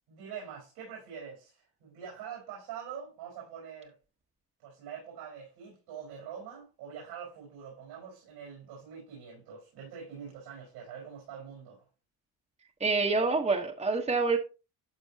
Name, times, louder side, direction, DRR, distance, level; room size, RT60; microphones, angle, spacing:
voice 1, 0.1-3.9 4.6-11.9 13.0-13.2, right 7 dB, 90° right, 4.8 m, -45 dB
voice 2, 12.8-14.4, right 4 dB, 15° right, 1.3 m, -27 dB
12.5 x 4.5 x 2.9 m
cardioid pair, 90°, 38 cm